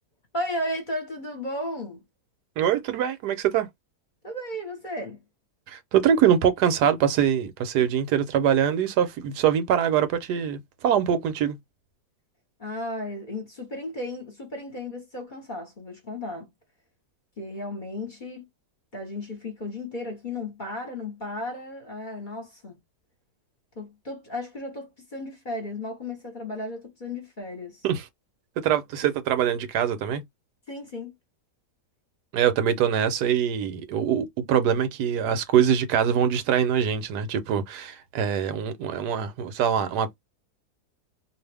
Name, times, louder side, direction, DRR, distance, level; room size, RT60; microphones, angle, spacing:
voice 1, 0.3-2.0 4.2-5.2 12.6-16.5 17.4-18.5 18.9-22.8 23.8-27.9 30.7-31.1, left 1 dB, 35° left, 0.9 m, -34 dB
voice 2, 2.6-3.7 5.7-11.6 27.8-28.0 28.6-30.2 32.3-40.2, right 9 dB, 85° right, 1.2 m, -23 dB
2.7 x 2.5 x 3.3 m
omnidirectional pair, 1.7 m